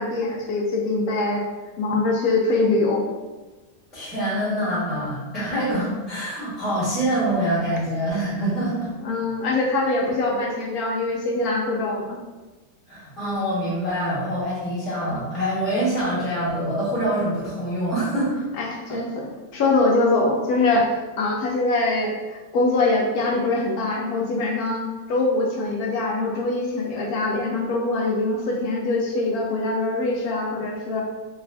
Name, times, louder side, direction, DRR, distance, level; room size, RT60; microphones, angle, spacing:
voice 1, 0.0-1.4 1.8-3.0 9.0-12.2 18.6-31.0, left 2 dB, 70° left, -1 dB, 0.9 m, -23 dB
voice 2, 3.9-8.9 12.9-18.4 18.9-19.0, right 1 dB, ahead, -10 dB, 1.1 m, -25 dB
3.2 x 2.4 x 3.4 m, 1.2 s
omnidirectional pair, 2.0 m